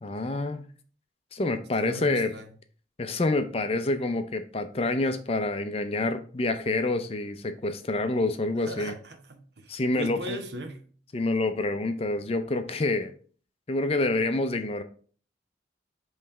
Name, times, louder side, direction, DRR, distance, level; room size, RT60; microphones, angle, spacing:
voice 1, 0.0-0.7 1.3-2.3 3.0-8.9 9.7-10.4 11.1-13.1 13.7-14.8, left 2 dB, 30° left, 9 dB, 0.5 m, -27 dB
voice 2, 1.8-2.5 8.7-10.8, right 2 dB, 65° right, 6 dB, 1.0 m, -38 dB
5.4 x 3.2 x 5.5 m, 0.43 s
head